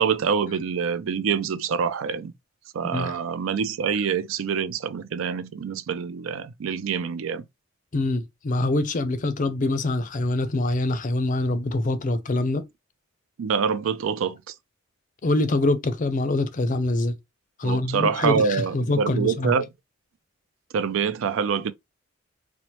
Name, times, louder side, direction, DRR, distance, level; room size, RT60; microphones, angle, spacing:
voice 1, 0.0-2.3 2.7-7.4 13.4-14.5 17.6-19.7 20.7-21.7, right 6 dB, 80° right, 0.4 m, -25 dB
voice 2, 7.9-12.6 15.2-17.1 17.6-19.5, left 2 dB, 40° left, 0.5 m, -24 dB
4.3 x 2.0 x 2.9 m
head